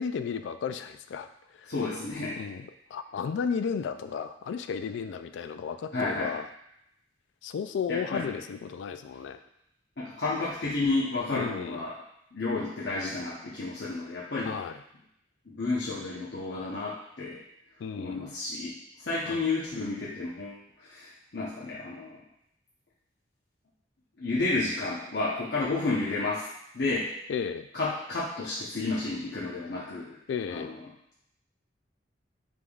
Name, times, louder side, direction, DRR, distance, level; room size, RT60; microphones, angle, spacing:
voice 1, 0.0-1.7 2.4-2.7 2.9-6.5 7.4-9.4 11.3-11.9 14.4-14.8 17.8-18.3 19.2-19.4 27.3-27.7 30.3-30.7, left 6 dB, 85° left, 9 dB, 0.3 m, -34 dB
voice 2, 1.7-2.4 5.9-6.4 7.9-8.3 10.0-11.9 12.3-14.6 15.5-17.4 18.0-18.7 19.0-22.2 24.2-26.5 26.7-27.1 27.7-30.2 30.5-30.8, left 3 dB, 65° left, -8 dB, 0.8 m, -31 dB
5.1 x 3.5 x 2.3 m, 0.77 s
head